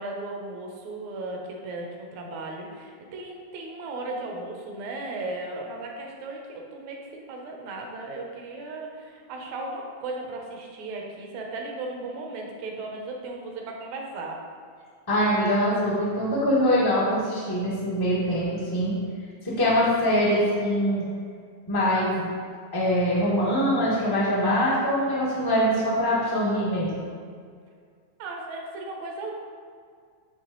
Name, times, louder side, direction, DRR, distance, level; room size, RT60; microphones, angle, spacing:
voice 1, 0.0-14.4 28.2-29.3, right 2 dB, 75° right, 0 dB, 2.1 m, -36 dB
voice 2, 15.1-18.9 19.4-21.0 21.7-22.3 22.7-26.9, equal, 35° left, -7 dB, 0.3 m, -23 dB
9.5 x 3.4 x 3.9 m, 2.1 s
omnidirectional pair, 3.3 m